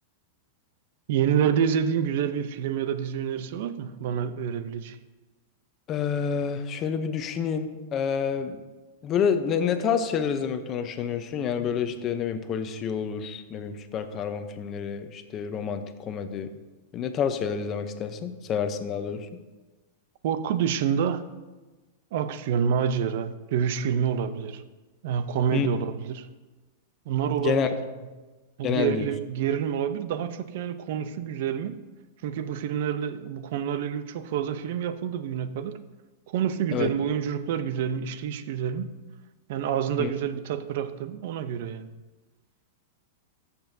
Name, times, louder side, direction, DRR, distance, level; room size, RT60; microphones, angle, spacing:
voice 1, 1.1-5.0 20.2-21.2 22.1-24.6 25.0-26.3 27.1-27.7 28.6-31.8 32.2-35.8 36.3-39.0 39.5-41.9, right 8 dB, 60° right, 0.6 m, -28 dB
voice 2, 5.9-8.6 9.0-16.5 16.9-19.3 25.5-25.7 27.4-27.7 28.6-29.1 36.7-36.9 40.0-40.1, left 7 dB, 30° left, 0.7 m, -28 dB
14.0 x 6.9 x 2.7 m
supercardioid pair, 145°, 0 cm